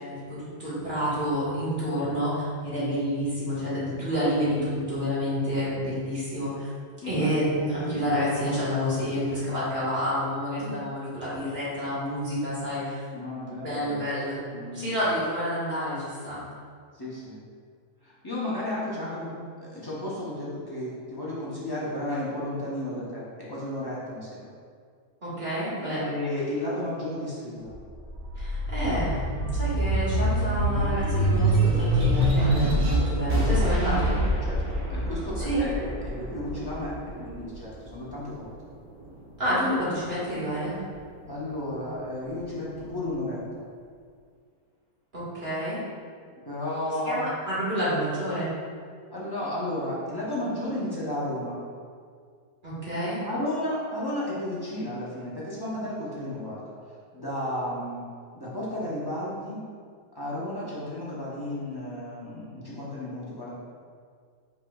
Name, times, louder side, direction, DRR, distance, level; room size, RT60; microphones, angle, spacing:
voice 1, 0.0-6.7 7.1-13.0 13.6-14.4 14.7-16.4 25.2-26.1 28.4-29.2 29.5-34.2 35.4-35.7 39.4-40.8 45.1-45.8 47.0-48.5 52.6-53.2, equal, 35° right, -10 dB, 1.5 m, -29 dB
voice 2, 7.0-7.3 13.1-14.1 14.5-14.9 16.9-17.4 18.0-19.3 19.6-24.5 26.0-27.7 34.4-38.5 41.2-43.6 46.4-47.2 49.1-51.6 53.2-56.7 57.1-58.1 58.3-59.6 60.1-63.6, left 1 dB, 30° left, -8 dB, 0.4 m, -33 dB
sound 1, 27.7-38.5 39.0-40.2, right 1 dB, 75° right, 1.4 m, -26 dB
5.1 x 4.3 x 2.3 m, 2.1 s
omnidirectional pair, 1.7 m